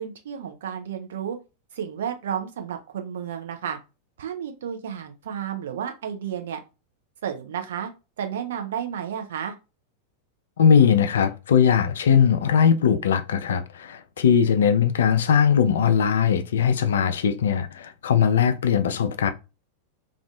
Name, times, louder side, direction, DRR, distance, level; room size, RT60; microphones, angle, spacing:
voice 1, 0.0-1.4 1.7-3.8 4.2-6.6 7.2-7.9 8.2-9.6, right 8 dB, 60° right, 0.4 m, -32 dB
voice 2, 10.6-19.3, left 7 dB, 65° left, 0.3 m, -20 dB
2.5 x 2.4 x 2.3 m
figure-of-eight pair, 90°, 0 cm